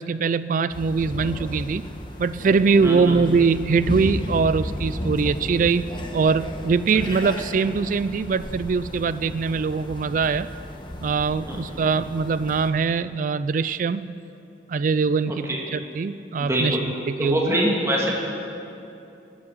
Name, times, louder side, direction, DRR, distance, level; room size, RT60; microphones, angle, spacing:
voice 1, 0.0-1.8 2.2-10.5 11.0-14.2 14.7-15.5 15.7-16.8 17.1-17.6, right 5 dB, 45° right, 15 dB, 0.3 m, -22 dB
sound 1, 0.7-12.7, left 1 dB, 25° left, 1.2 m, -34 dB
voice 2, 2.8-3.2 11.5-11.6 15.3-15.6 16.4-16.8 17.2-18.1, right 1 dB, 15° right, -2 dB, 2.1 m, -24 dB
18.0 x 8.5 x 7.3 m, 2.7 s
head